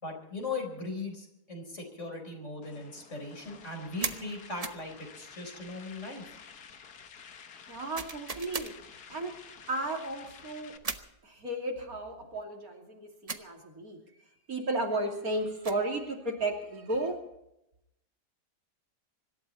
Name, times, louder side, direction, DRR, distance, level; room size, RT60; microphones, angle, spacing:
voice 1, 0.0-6.3, left 3 dB, 45° left, 2 dB, 4.8 m, -39 dB
sound 1, 2.6-10.8, left 6 dB, 70° left, 1.8 m, -51 dB
sound 2, 4.0-4.2 4.6-4.9 7.9-8.7 10.8-11.1 13.3-13.5 15.4-15.9, right 4 dB, 30° right, 0.9 m, -36 dB
voice 2, 7.7-8.7 9.1-9.4 9.7-10.7 11.2-14.0 14.5-17.2, right 2 dB, 60° right, 1 dB, 3.2 m, -34 dB
25.5 x 12.5 x 4.2 m, 0.84 s
omnidirectional pair, 1.7 m